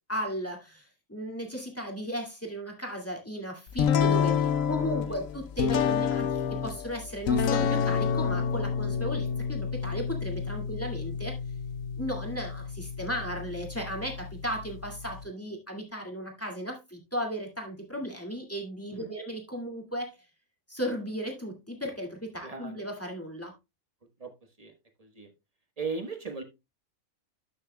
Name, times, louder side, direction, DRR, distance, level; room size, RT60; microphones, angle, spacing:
voice 1, 0.1-11.3 12.0-20.2 20.7-23.5, equal, 10° left, 1 dB, 2.0 m, -35 dB
sound 1, 3.8-15.2, left 7 dB, 70° left, 1.1 m, -29 dB
voice 2, 22.4-22.8 24.2-24.3 24.6-24.7 25.0-25.3 25.8-26.4, right 4 dB, 30° right, 6 dB, 1.2 m, -37 dB
12.5 x 6.5 x 2.2 m, 0.23 s
omnidirectional pair, 1.5 m